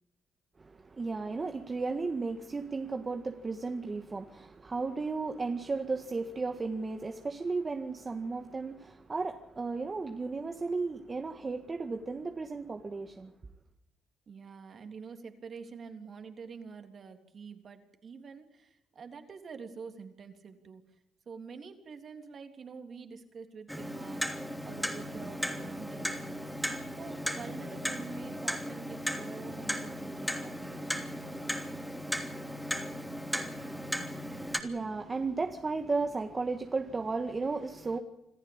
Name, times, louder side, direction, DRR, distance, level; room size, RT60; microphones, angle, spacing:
voice 1, 0.6-13.3 34.4-38.0, right 3 dB, 30° right, 1.9 m, -34 dB
voice 2, 14.3-20.8 21.3-31.4, right 5 dB, 50° right, 3.4 m, -47 dB
Clock, 23.7-34.6, equal, ahead, 3.0 m, -36 dB
27.0 x 14.5 x 8.9 m
cardioid pair, 90°, 0 cm